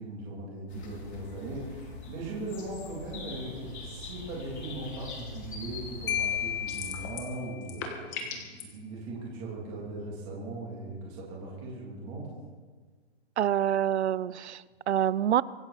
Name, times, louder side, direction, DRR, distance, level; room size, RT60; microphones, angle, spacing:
voice 1, 0.0-12.3, right 2 dB, 15° right, -5 dB, 3.0 m, -39 dB
sound 1, 0.7-7.1, left 3 dB, 90° left, 5.2 m, -43 dB
Marimba xylophone, 6.1-7.8, left 10 dB, 60° left, 0.6 m, -33 dB
sound 2, 6.7-7.3 7.6-8.6, left 7 dB, 15° left, 1.3 m, -38 dB
voice 2, 13.4-15.4, right 10 dB, 90° right, 20 dB, 0.7 m, -26 dB
24.5 x 13.0 x 4.2 m, 1.5 s
hypercardioid pair, 180°, 32 cm